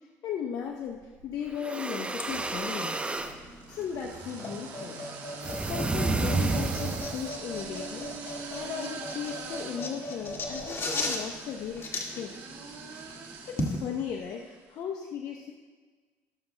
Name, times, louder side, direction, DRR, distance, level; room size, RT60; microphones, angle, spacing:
voice 1, 0.2-3.0 3.7-5.0 5.4-12.3 13.6-15.5, left 7 dB, 65° left, 1 dB, 0.8 m, -37 dB
sound 1, 0.9-1.5 2.3-14.6, right 5 dB, 75° right, 1.5 m, -44 dB
sound 2, 1.5-3.4 5.4-7.3, right 3 dB, 15° right, 0.7 m, -30 dB
sound 3, 2.1-13.8, left 2 dB, 40° left, 1.8 m, -38 dB
19.0 x 7.2 x 2.2 m, 1.4 s
supercardioid pair, 75°, 6 cm